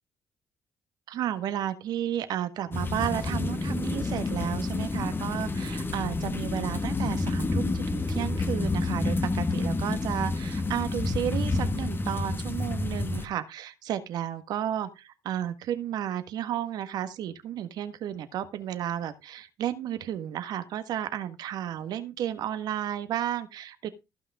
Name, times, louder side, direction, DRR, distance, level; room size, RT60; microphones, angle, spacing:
voice 1, 1.1-23.9, right 11 dB, 70° right, 1.5 m, -32 dB
sound 1, 2.7-13.3, left 3 dB, 30° left, 1.8 m, -29 dB
15.0 x 5.8 x 4.7 m
hypercardioid pair, 50°, 7 cm